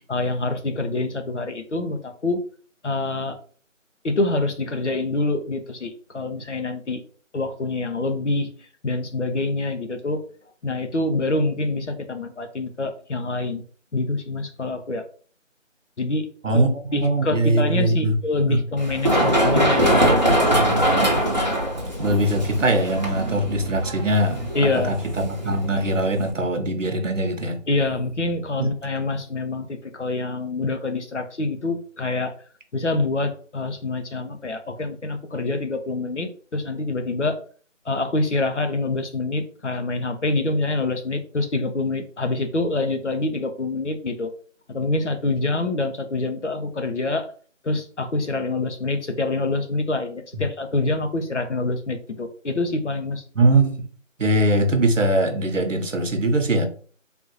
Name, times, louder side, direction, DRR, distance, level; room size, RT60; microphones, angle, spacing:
voice 1, 0.1-2.4 2.8-3.4 4.0-7.0 7.3-8.5 8.8-10.2 10.6-13.6 13.9-15.1 16.0-16.3 16.5-20.4 24.5-24.9 27.7-32.3 32.7-37.4 37.9-44.3 44.7-47.3 47.6-53.2, left 2 dB, 60° left, 6 dB, 0.7 m, -26 dB
voice 2, 16.4-18.2 18.5-18.6 22.0-27.6 28.6-28.7 53.4-53.9 54.2-56.7, right 1 dB, 70° right, 6 dB, 0.9 m, -21 dB
Run, 18.8-26.3, right 1 dB, 35° right, 0.8 m, -22 dB
3.5 x 2.5 x 2.9 m, 0.43 s
figure-of-eight pair, 180°, 39 cm